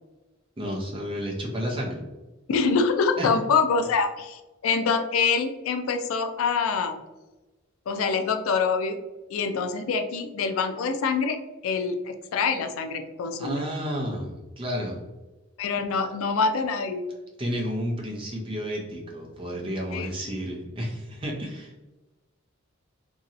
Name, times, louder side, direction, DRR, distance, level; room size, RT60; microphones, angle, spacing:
voice 1, 0.6-2.0 3.2-3.3 13.4-15.0 17.4-21.7, equal, 25° right, -1 dB, 0.6 m, -31 dB
voice 2, 2.5-7.0 7.9-9.0 9.3-11.4 11.6-13.6 15.6-17.1 19.9-20.1, left 5 dB, 90° left, 7 dB, 0.4 m, -25 dB
2.9 x 2.7 x 2.5 m, 1.1 s
head